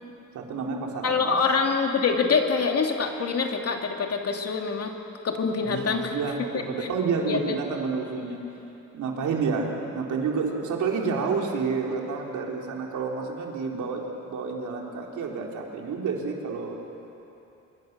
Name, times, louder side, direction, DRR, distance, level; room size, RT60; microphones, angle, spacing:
voice 1, 0.3-1.4 5.6-8.4 8.9-16.8, right 5 dB, 75° right, 0 dB, 3.6 m, -29 dB
voice 2, 1.0-4.9 5.2-6.1 7.3-7.5, left 5 dB, 55° left, 3 dB, 2.6 m, -25 dB
25.0 x 23.0 x 6.8 m, 3.0 s
cardioid pair, 90°, 30 cm